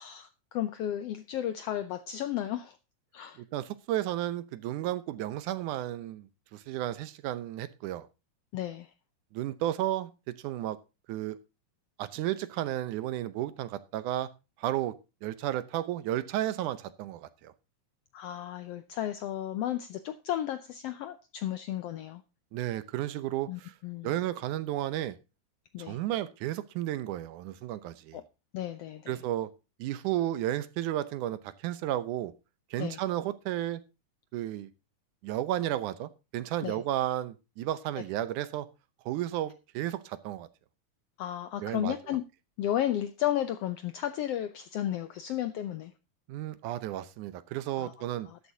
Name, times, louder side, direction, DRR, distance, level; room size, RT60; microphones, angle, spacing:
voice 1, 0.0-2.8 3.1-3.4 8.5-8.9 18.1-22.2 23.5-24.1 25.7-26.0 28.1-28.2 28.5-29.2 32.8-33.0 36.6-36.8 41.2-42.2 42.6-45.9 47.8-47.9 48.3-48.4, left 12 dB, 80° left, 1.4 m, -33 dB
voice 2, 3.4-8.1 9.3-10.1 10.4-10.8 11.1-11.4 12.0-14.3 14.6-14.9 15.2-17.5 22.5-23.7 24.0-25.2 25.8-28.2 29.1-29.5 29.8-32.3 32.7-33.8 34.3-34.7 35.2-38.7 39.1-40.5 41.6-41.9 46.3-48.3, right 13 dB, 85° right, 2.3 m, -33 dB
13.0 x 11.5 x 2.8 m
omnidirectional pair, 3.5 m